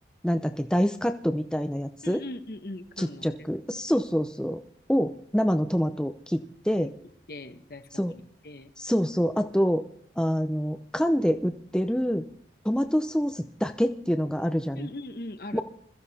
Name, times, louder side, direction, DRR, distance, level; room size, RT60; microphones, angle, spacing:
voice 1, 0.2-2.2 3.0-4.6 4.9-6.9 7.9-8.1 8.8-9.8 10.2-12.2 12.6-14.9 15.5-15.6, equal, 5° left, 7 dB, 0.6 m, -26 dB
voice 2, 2.0-3.5 4.1-4.2 6.7-6.9 7.3-8.7 14.8-15.6, left 1 dB, 55° left, 9 dB, 1.2 m, -40 dB
21.5 x 14.5 x 4.2 m, 0.63 s
head